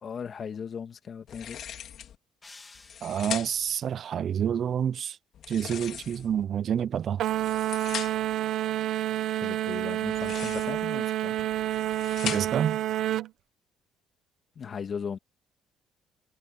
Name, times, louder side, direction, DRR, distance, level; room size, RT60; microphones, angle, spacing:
voice 1, 0.0-1.6 9.3-11.5 14.6-15.2, left 6 dB, 40° left, 2.5 m, -37 dB
sound 1, 1.3-2.2 2.7-3.7 5.3-6.4 7.2-8.3 10.0-10.9 11.5-12.7, left 10 dB, 60° left, 3.1 m, -39 dB
sound 2, 2.4-3.7, left 3 dB, 20° left, 2.5 m, -52 dB
voice 2, 3.0-5.2 5.5-7.2 12.2-12.8, right 9 dB, 50° right, 0.4 m, -28 dB
sound 3, 7.2-13.3, right 13 dB, 70° right, 0.9 m, -29 dB
cardioid pair, 120°, 0 cm